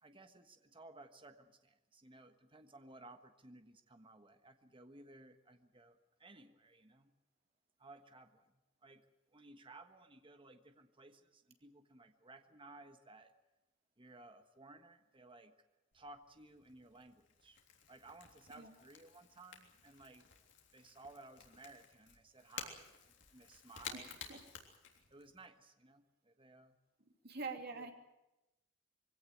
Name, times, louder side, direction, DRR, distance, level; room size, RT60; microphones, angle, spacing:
voice 1, 0.0-7.1 7.8-8.5 8.8-9.1 9.3-13.3 14.0-15.5 15.9-17.6 17.9-20.3 20.7-24.2 25.1-26.8 27.7-27.9, right 2 dB, 25° right, 8 dB, 1.4 m, -58 dB
Crackle / Crack, 15.9-25.5, left 7 dB, 70° left, 3.4 m, -54 dB
voice 2, 23.9-24.4 27.2-27.9, right 4 dB, 55° right, 4 dB, 2.9 m, -45 dB
23.0 x 17.0 x 9.4 m, 0.97 s
head